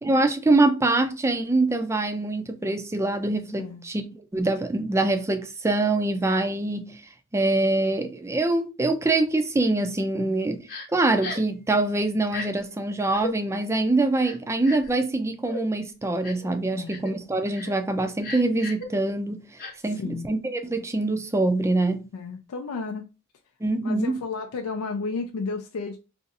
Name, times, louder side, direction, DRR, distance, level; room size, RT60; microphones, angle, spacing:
voice 1, 0.0-7.0 7.3-10.6 10.9-19.4 19.8-22.0 23.6-24.2, right 2 dB, 15° right, 0.4 m, -24 dB
Crying sobbing, 10.7-10.9 11.2-11.5 12.3-12.5 13.1-13.3 14.2-14.9 15.5-15.6 16.2-16.5 16.9-17.1 17.5-17.7 18.2-18.9 19.6-19.7, left 2 dB, 40° left, 0.8 m, -35 dB
voice 2, 16.7-17.1 19.9-20.3 22.1-23.0 23.8-26.0, left 4 dB, 85° left, 0.4 m, -33 dB
2.6 x 2.4 x 4.0 m
head